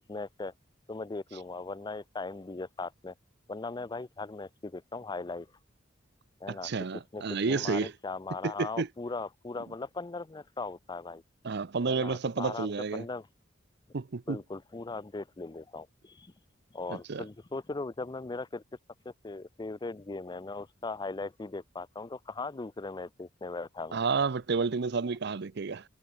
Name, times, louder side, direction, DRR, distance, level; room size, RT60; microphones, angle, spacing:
voice 1, 0.1-0.5 0.9-3.1 3.5-5.5 6.4-11.2 11.9-13.3 14.3-16.3 16.7-18.6 19.1-24.0, left 3 dB, 20° left, 0.5 m, -39 dB
voice 2, 6.5-7.9 8.6-8.9 11.4-13.0 13.9-14.4 16.9-17.2 23.9-25.8, right 4 dB, 60° right, 0.6 m, -30 dB
head